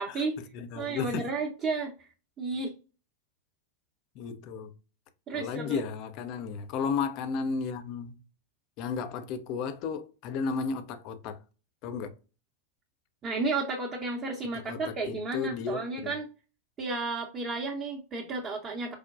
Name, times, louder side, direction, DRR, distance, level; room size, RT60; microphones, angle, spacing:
voice 1, 0.0-0.4 0.8-1.9 2.4-2.7 5.3-5.8 13.2-16.2 16.8-18.9, right 3 dB, 25° right, 0.7 m, -32 dB
voice 2, 0.5-1.3 4.2-4.7 5.3-8.2 8.8-11.4 11.8-12.1 14.5-16.2, left 5 dB, 40° left, 0.5 m, -34 dB
4.8 x 2.1 x 2.4 m
figure-of-eight pair, 90°, 0 cm